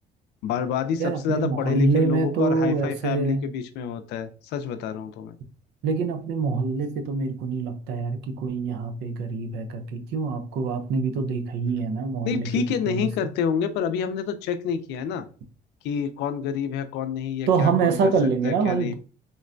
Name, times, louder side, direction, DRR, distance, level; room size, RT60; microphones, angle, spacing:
voice 1, 0.4-5.4 12.2-15.3 15.8-18.0 18.4-18.9, left 7 dB, 85° left, 0.4 m, -28 dB
voice 2, 1.0-3.4 5.8-13.1 17.5-18.9, right 4 dB, 80° right, 0.6 m, -25 dB
3.8 x 2.1 x 2.5 m
cardioid pair, 110°, 17 cm